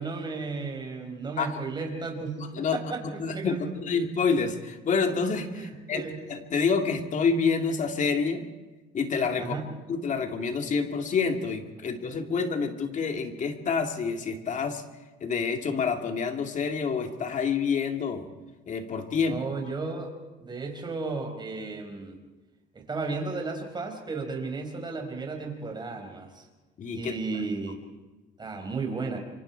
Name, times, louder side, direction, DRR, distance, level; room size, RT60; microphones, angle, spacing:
voice 1, 0.0-2.4 2.7-3.0 3.3-3.6 5.5-6.2 9.4-9.7 19.3-20.1 20.4-22.2 22.7-26.5 26.9-27.8 28.4-29.2, right 3 dB, 25° right, 3 dB, 4.9 m, -34 dB
voice 2, 2.4-2.8 3.0-8.4 8.9-9.5 9.9-14.8 15.2-18.3 18.7-19.4 26.8-27.1, left 5 dB, 45° left, 5 dB, 2.4 m, -28 dB
26.0 x 24.5 x 4.6 m, 1.2 s
cardioid pair, 110°, 17 cm